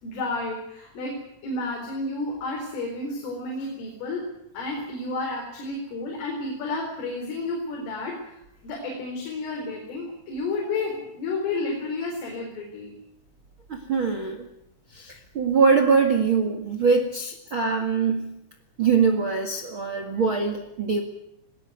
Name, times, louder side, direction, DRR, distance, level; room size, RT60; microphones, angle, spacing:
voice 1, 0.0-4.3 4.5-12.9, left 2 dB, 90° left, 0 dB, 6.9 m, -31 dB
voice 2, 13.7-14.5 14.9-18.4 18.8-21.0, right 5 dB, 65° right, 6 dB, 1.2 m, -23 dB
19.5 x 19.5 x 9.4 m, 0.80 s
omnidirectional pair, 5.6 m